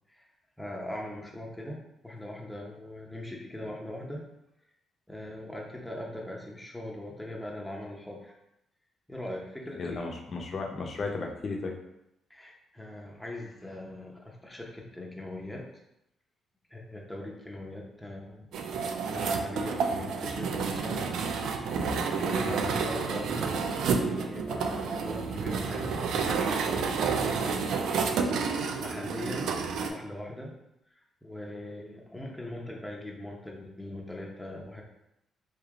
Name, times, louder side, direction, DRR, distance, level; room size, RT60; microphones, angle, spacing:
voice 1, 0.6-1.8 2.0-4.2 5.1-8.3 9.1-10.2 12.3-15.6 16.7-21.1 21.8-28.1 28.5-29.5 29.9-30.5 30.9-34.8, left 1 dB, 5° left, -2 dB, 0.8 m, -41 dB
voice 2, 9.8-11.8 22.4-22.7, left 3 dB, 50° left, 1 dB, 0.7 m, -35 dB
sound 1, 18.5-29.9, right 5 dB, 75° right, 0.4 m, -30 dB
3.3 x 2.8 x 3.6 m, 0.84 s
cardioid pair, 90°, 0 cm